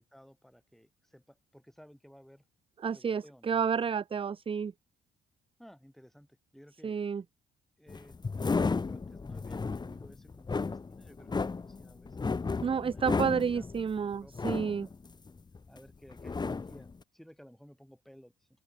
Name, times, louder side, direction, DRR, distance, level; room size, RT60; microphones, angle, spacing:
voice 1, 0.0-2.4 2.9-3.6 5.6-7.0 7.8-12.2 12.8-13.7 14.0-14.9 15.7-18.5, equal, ahead, 5.1 m, -56 dB
voice 2, 2.8-4.7 6.8-7.2 12.6-14.9, right 6 dB, 25° right, 0.5 m, -30 dB
sound 1, 7.9-15.8 16.1-16.9, left 4 dB, 20° left, 0.7 m, -33 dB
open air
cardioid pair, 90°, 20 cm